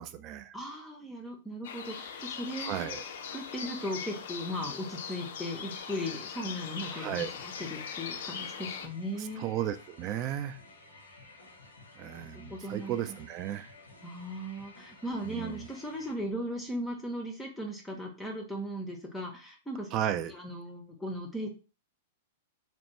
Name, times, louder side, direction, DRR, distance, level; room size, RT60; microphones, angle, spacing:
voice 1, 0.0-0.5 2.6-3.0 6.9-7.3 9.2-10.6 12.0-13.7 15.2-15.7 19.9-20.3, right 11 dB, 35° right, 10 dB, 0.3 m, -34 dB
voice 2, 0.5-2.9 3.3-9.5 12.2-13.0 14.0-19.9 20.2-21.5, equal, 5° left, 1 dB, 0.6 m, -37 dB
sound 1, 1.6-8.9, left 7 dB, 60° left, 0.4 m, -40 dB
sound 2, 6.5-16.2, left 2 dB, 85° left, 0.8 m, -54 dB
3.3 x 2.1 x 3.0 m, 0.34 s
figure-of-eight pair, 100°, 0 cm